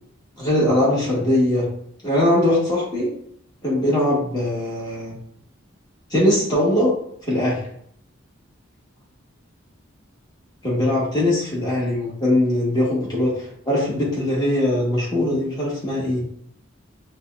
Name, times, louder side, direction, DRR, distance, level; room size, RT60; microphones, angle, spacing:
voice 1, 0.4-1.6 2.0-3.1 3.6-5.1 6.1-6.9 7.2-7.6 10.6-16.2, left 1 dB, 20° left, -6 dB, 1.2 m, -21 dB
5.1 x 2.2 x 2.4 m, 0.67 s
head